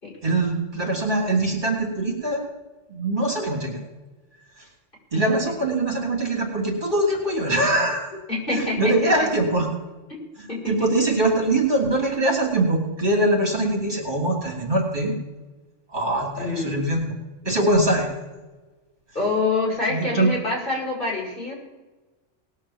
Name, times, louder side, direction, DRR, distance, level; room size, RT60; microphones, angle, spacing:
voice 1, 0.2-2.4 2.9-3.8 4.6-4.7 5.1-8.1 8.5-9.7 10.4-15.1 15.9-17.0 17.4-18.1 19.9-20.3, right 2 dB, 40° right, -1 dB, 3.3 m, -22 dB
voice 2, 8.3-9.1 10.5-10.9 16.4-16.8 19.1-21.5, left 3 dB, 45° left, -4 dB, 6.1 m, -26 dB
19.5 x 6.5 x 7.4 m, 1.2 s
omnidirectional pair, 1.3 m